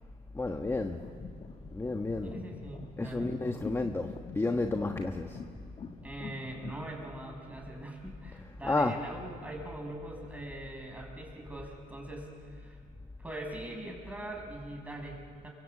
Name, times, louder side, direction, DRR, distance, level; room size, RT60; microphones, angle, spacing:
voice 1, 0.3-1.1 1.7-2.3 3.0-5.4 8.6-9.0, left 2 dB, 15° left, 5 dB, 1.3 m, -31 dB
sound 1, 0.6-7.1, left 5 dB, 35° left, 1.6 m, -45 dB
voice 2, 2.2-3.3 6.0-12.8 13.2-15.5, right 1 dB, 10° right, 1 dB, 6.4 m, -42 dB
29.0 x 24.0 x 8.4 m, 2.2 s
cardioid pair, 110°, 17 cm